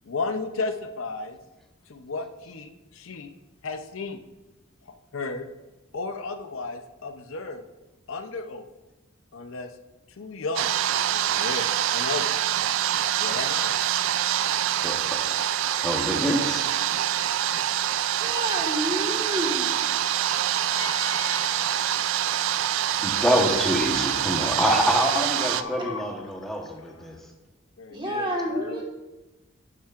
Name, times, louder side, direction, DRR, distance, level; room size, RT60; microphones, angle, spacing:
voice 1, 0.0-1.4 1.9-3.3 3.6-4.2 4.9-5.5 5.9-7.6 8.1-8.6 9.3-9.7 10.2-12.3 13.2-13.7 20.7-21.8 23.8-24.8 25.1-27.2 27.8-28.8, left 3 dB, 85° left, 7 dB, 0.7 m, -34 dB
sound 1, 10.6-25.6, right 11 dB, 70° right, 0.3 m, -25 dB
voice 2, 14.8-15.2 15.8-16.7 23.0-27.2, equal, ahead, 1 dB, 1.1 m, -26 dB
voice 3, 18.2-19.7 25.8-25.9 27.9-28.8, equal, 25° right, 0 dB, 1.6 m, -29 dB
11.5 x 7.2 x 2.5 m, 1.1 s
head